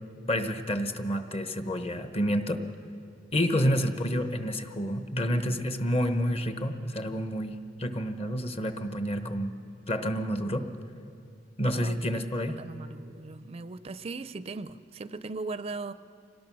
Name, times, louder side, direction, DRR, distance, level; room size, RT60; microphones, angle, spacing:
voice 1, 0.3-2.6 3.3-9.5 9.9-10.7 11.6-12.6, equal, 35° left, 8 dB, 1.1 m, -29 dB
voice 2, 11.7-12.1 12.6-15.9, right 3 dB, 35° right, 13 dB, 0.4 m, -38 dB
26.0 x 18.5 x 6.2 m, 2.5 s
head